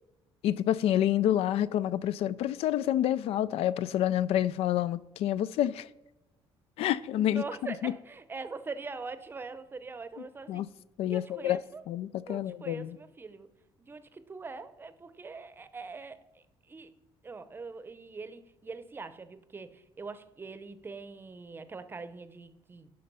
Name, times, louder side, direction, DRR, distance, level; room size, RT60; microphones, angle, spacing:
voice 1, 0.4-5.9 6.8-7.4 7.8-7.9 10.5-10.7 11.0-11.6 11.9-13.0, left 12 dB, 80° left, 0.4 m, -28 dB
voice 2, 7.2-10.6 11.1-11.8 12.3-13.5 13.8-16.2 16.7-16.9 17.2-22.9, right 4 dB, 20° right, 0.7 m, -42 dB
11.5 x 5.2 x 5.4 m
cardioid pair, 135°, 10 cm